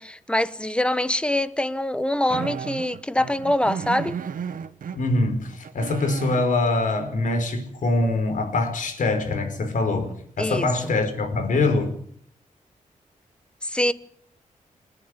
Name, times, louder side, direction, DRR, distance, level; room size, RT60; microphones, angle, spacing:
voice 1, 0.0-4.2 10.4-10.7 13.6-13.9, left 1 dB, 5° left, 0.9 m, -24 dB
sound 1, 2.3-5.0 5.5-6.5 9.4-9.5 10.0-10.3, right 7 dB, 85° right, 1.3 m, -34 dB
voice 2, 5.0-11.9, left 2 dB, 70° left, 5.3 m, -24 dB
28.5 x 9.8 x 9.9 m
wide cardioid pair, 175°, 14 cm